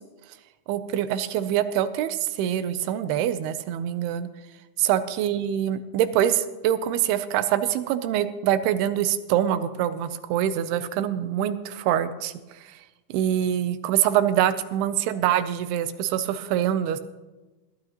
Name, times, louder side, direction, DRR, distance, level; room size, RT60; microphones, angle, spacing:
voice 1, 0.7-4.3 4.8-12.3 13.1-17.0, right 10 dB, 80° right, 12 dB, 2.6 m, -24 dB
20.5 x 11.5 x 2.9 m, 1.1 s
omnidirectional pair, 4.6 m